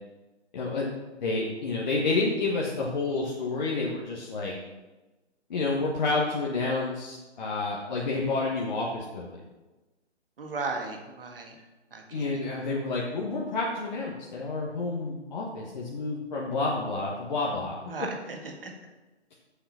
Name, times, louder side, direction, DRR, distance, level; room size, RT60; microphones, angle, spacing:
voice 1, 0.5-0.9 1.2-4.5 5.5-9.3 12.1-17.8, left 3 dB, 40° left, -3 dB, 1.4 m, -29 dB
voice 2, 10.4-11.6 11.9-12.3 17.9-18.7, right 3 dB, 50° right, 2 dB, 1.8 m, -36 dB
7.6 x 6.9 x 5.7 m, 1.1 s
figure-of-eight pair, 135°, 35 cm